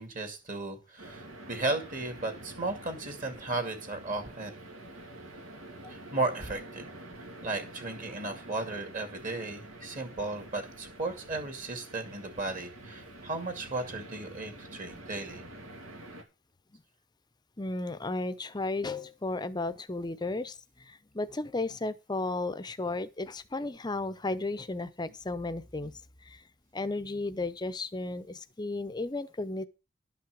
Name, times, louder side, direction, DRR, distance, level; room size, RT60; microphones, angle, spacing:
voice 1, 0.0-4.5 5.9-6.9 7.4-15.4, right 2 dB, 40° right, 2.4 m, -35 dB
sound 1, 1.0-16.2, right 1 dB, 90° right, 2.3 m, -47 dB
voice 2, 17.6-25.9 26.2-26.4 26.7-29.7, left 2 dB, 20° left, 0.6 m, -34 dB
11.5 x 5.8 x 6.3 m
head